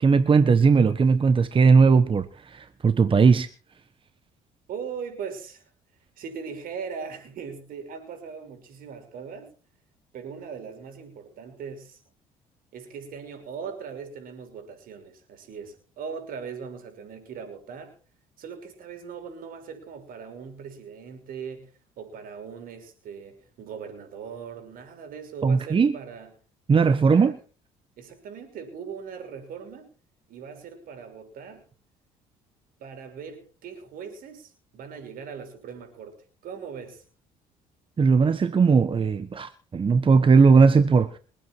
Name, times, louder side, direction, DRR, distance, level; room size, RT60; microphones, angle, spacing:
voice 1, 0.0-3.5 25.4-25.9 26.7-27.3 38.0-41.2, right 5 dB, 35° right, 1.3 m, -18 dB
voice 2, 4.7-5.6 6.2-9.5 10.1-12.0 12.7-17.9 18.4-26.3 26.8-27.3 28.0-29.9 30.3-31.7 32.8-36.2 36.4-37.0, right 6 dB, 65° right, 6.0 m, -39 dB
27.0 x 9.2 x 4.7 m
supercardioid pair, 75°, 16 cm